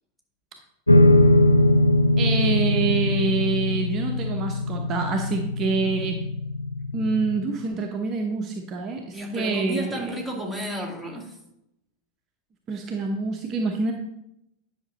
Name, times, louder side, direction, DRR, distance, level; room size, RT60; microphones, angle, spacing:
sound 1, 0.9-7.4, left 1 dB, 85° left, 0.5 m, -21 dB
voice 1, 2.2-6.2 6.9-10.1 12.7-13.9, right 4 dB, 30° right, 2 dB, 1.0 m, -26 dB
voice 2, 9.1-11.3, equal, 5° left, -1 dB, 2.2 m, -32 dB
10.0 x 6.1 x 4.1 m, 0.83 s
figure-of-eight pair, 90°, 0 cm